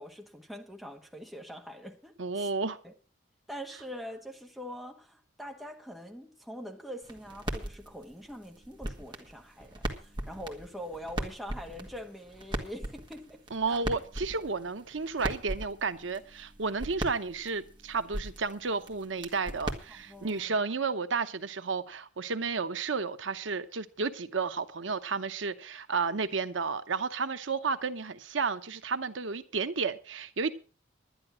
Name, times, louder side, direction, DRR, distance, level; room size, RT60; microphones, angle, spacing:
voice 1, 0.0-2.5 2.8-2.9 3.5-13.8 19.9-20.6, equal, ahead, 1.5 m, -44 dB
voice 2, 2.2-2.8 13.5-30.5, right 4 dB, 90° right, 0.9 m, -32 dB
sound 1, 7.0-20.5, right 1 dB, 25° right, 1.7 m, -40 dB
11.0 x 10.5 x 6.1 m
head